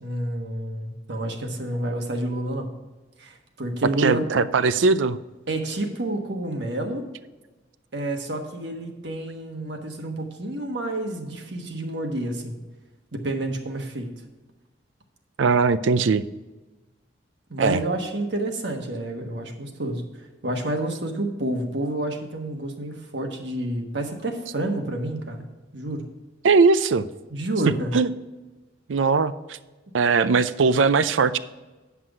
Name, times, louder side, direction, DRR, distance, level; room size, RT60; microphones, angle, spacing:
voice 1, 0.0-2.7 3.2-4.2 5.5-7.0 7.9-12.6 13.1-14.1 17.5-25.4 25.7-26.1 27.3-27.9, right 1 dB, 70° right, 3 dB, 1.3 m, -29 dB
voice 2, 4.0-5.2 15.4-16.2 17.6-17.8 26.4-27.0 27.9-28.1 28.9-29.6 29.9-31.4, right 4 dB, 90° right, 15 dB, 0.5 m, -20 dB
9.6 x 5.9 x 4.8 m, 1.2 s
head